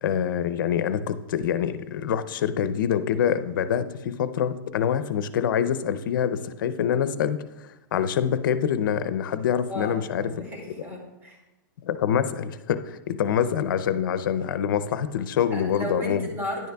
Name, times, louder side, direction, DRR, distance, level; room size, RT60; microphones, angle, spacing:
voice 1, 0.0-10.3 11.8-16.2, left 8 dB, 70° left, 13 dB, 0.6 m, -25 dB
voice 2, 9.7-11.4 15.5-16.7, equal, 20° right, -2 dB, 2.3 m, -34 dB
10.5 x 9.2 x 2.3 m, 1.0 s
hypercardioid pair, 145°, 11 cm